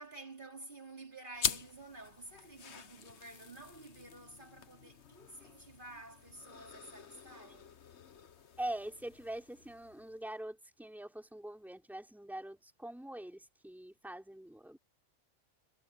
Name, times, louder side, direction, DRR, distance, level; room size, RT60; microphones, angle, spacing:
voice 1, 0.0-7.7, right 2 dB, 45° right, 3.3 m, -51 dB
sound 1, 1.3-10.3, left 7 dB, 65° left, 1.3 m, -44 dB
voice 2, 8.6-14.8, right 1 dB, ahead, 3.6 m, -43 dB
omnidirectional pair, 1.3 m